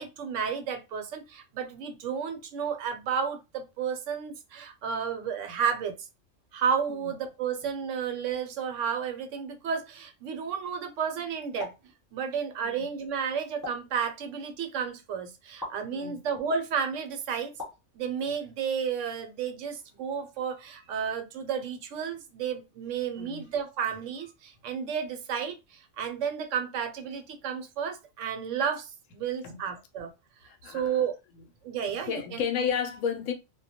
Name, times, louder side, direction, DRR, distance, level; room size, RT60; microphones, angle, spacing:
voice 1, 0.0-6.0 6.5-11.7 12.1-17.5 18.0-30.1 30.6-31.1 31.6-32.4, right 7 dB, 75° right, 0.9 m, -32 dB
sound 1, 11.6-11.9 13.6-14.0 15.6-15.8 17.6-17.9, left 3 dB, 15° left, 1.0 m, -39 dB
voice 2, 30.5-31.0 31.9-33.3, left 7 dB, 80° left, 0.9 m, -32 dB
2.2 x 2.1 x 2.7 m
omnidirectional pair, 1.3 m